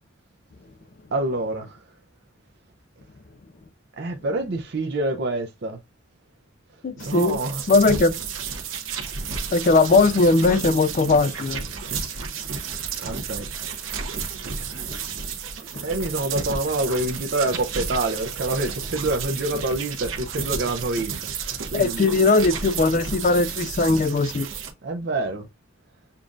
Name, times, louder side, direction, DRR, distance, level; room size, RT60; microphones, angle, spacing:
voice 1, 1.1-1.8 4.0-5.8 7.0-7.6 13.0-13.7 15.8-22.0 24.8-25.5, right 2 dB, 55° right, 0.5 m, -27 dB
voice 2, 6.8-7.4 7.7-8.1 9.5-11.7 21.7-24.5, left 3 dB, 40° left, 0.4 m, -19 dB
sound 1, 7.0-24.7, right 5 dB, 90° right, 0.9 m, -32 dB
6.8 x 2.4 x 2.5 m
head